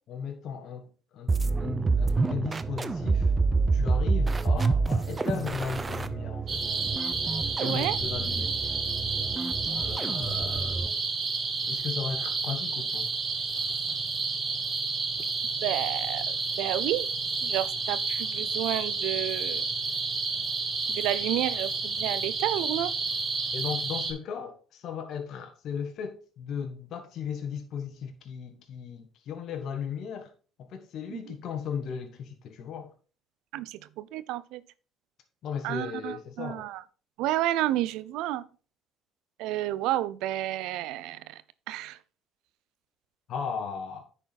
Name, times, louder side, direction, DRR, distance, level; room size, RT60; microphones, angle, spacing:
voice 1, 0.1-3.3 3.7-6.6 7.1-7.2 7.6-8.8 9.8-10.8 11.7-13.1 23.5-30.3 30.6-32.9 35.4-36.7 43.3-44.1, left 6 dB, 65° left, 1.4 m, -36 dB
sound 1, 1.3-11.0, right 4 dB, 30° right, 0.7 m, -28 dB
sound 2, 6.5-24.1, right 4 dB, 45° right, 2.2 m, -30 dB
voice 2, 7.6-8.0 15.6-17.1 17.4-19.7 20.9-22.9 31.1-31.2 33.5-34.6 35.6-36.8 37.2-38.5 39.4-41.4 41.7-42.0, right 14 dB, 80° right, 0.5 m, -31 dB
9.9 x 4.6 x 4.1 m
supercardioid pair, 75°, 0 cm